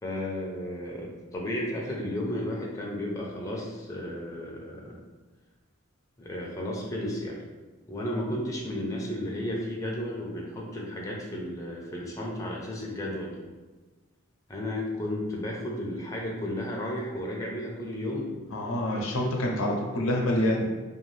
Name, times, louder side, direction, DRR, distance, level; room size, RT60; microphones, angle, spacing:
voice 1, 0.0-5.0 6.2-7.4 7.9-13.4 14.5-18.4, left 1 dB, 15° left, -2 dB, 0.4 m, -33 dB
voice 2, 18.5-20.7, left 1 dB, 85° left, 1 dB, 0.5 m, -27 dB
2.5 x 2.3 x 3.1 m, 1.3 s
head